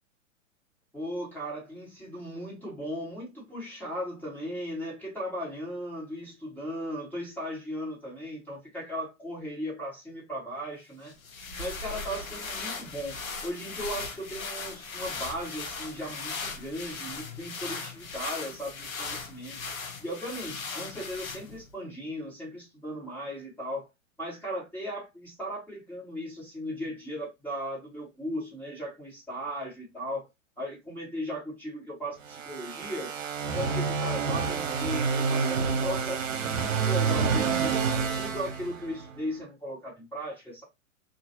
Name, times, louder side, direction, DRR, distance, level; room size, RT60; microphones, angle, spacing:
voice 1, 0.9-11.1 11.6-19.6 20.0-23.9 24.2-30.3 30.6-33.1 33.4-37.8 38.2-40.6, equal, 5° left, 1.5 m, -37 dB
sound 1, 11.1-21.7, left 4 dB, 85° left, 0.9 m, -38 dB
sound 2, 32.2-39.1, right 5 dB, 65° right, 0.8 m, -28 dB
3.0 x 2.4 x 2.8 m
hypercardioid pair, 115°, 41 cm